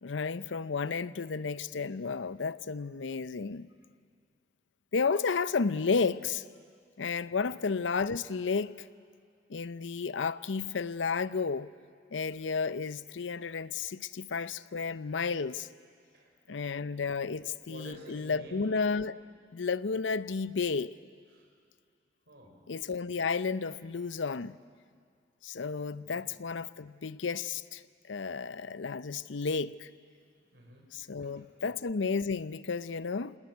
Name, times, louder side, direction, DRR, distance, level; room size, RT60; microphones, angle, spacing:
voice 1, 0.0-3.7 4.9-6.4 7.0-8.8 9.5-11.7 12.1-15.7 16.5-19.2 19.5-20.9 22.7-24.6 25.4-27.8 28.1-29.9 30.9-33.4, left 5 dB, 90° left, 0.6 m, -32 dB
voice 2, 16.1-16.8 17.3-17.4 17.7-18.8 21.3-21.4 22.3-22.6 25.7-26.3 30.5-30.8 31.2-31.7, right 1 dB, 65° right, 5.8 m, -51 dB
27.0 x 19.0 x 9.4 m
head